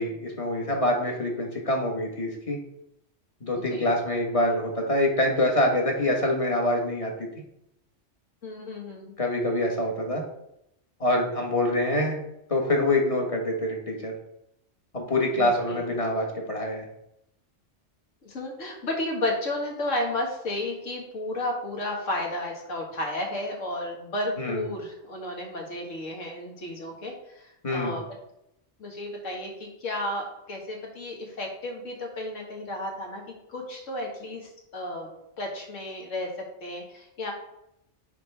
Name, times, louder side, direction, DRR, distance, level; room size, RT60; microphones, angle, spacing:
voice 1, 0.0-2.6 3.4-7.4 9.2-10.2 11.0-12.2 12.5-14.1 14.9-16.9 24.4-24.6 27.6-28.0, left 1 dB, 30° left, 1 dB, 1.4 m, -25 dB
voice 2, 8.4-9.2 15.4-15.9 18.2-28.0 28.8-33.2 33.5-35.1 35.4-36.3 36.6-37.3, left 1 dB, 85° left, 0 dB, 2.0 m, -33 dB
10.0 x 3.9 x 3.4 m, 0.81 s
omnidirectional pair, 1.3 m